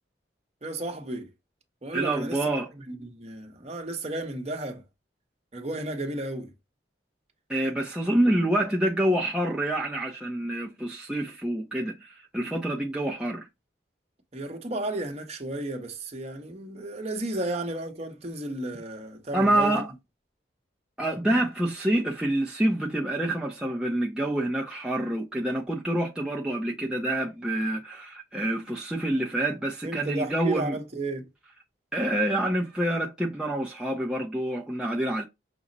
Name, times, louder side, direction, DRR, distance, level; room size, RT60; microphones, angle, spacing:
voice 1, 0.6-1.3 1.8-4.8 5.5-6.5 14.3-19.8 29.8-31.3, right 2 dB, 35° right, 0.9 m, -33 dB
voice 2, 1.9-2.7 7.5-13.5 19.3-19.9 21.0-30.8 31.9-35.2, right 1 dB, 5° right, 0.5 m, -27 dB
6.0 x 2.1 x 3.9 m
head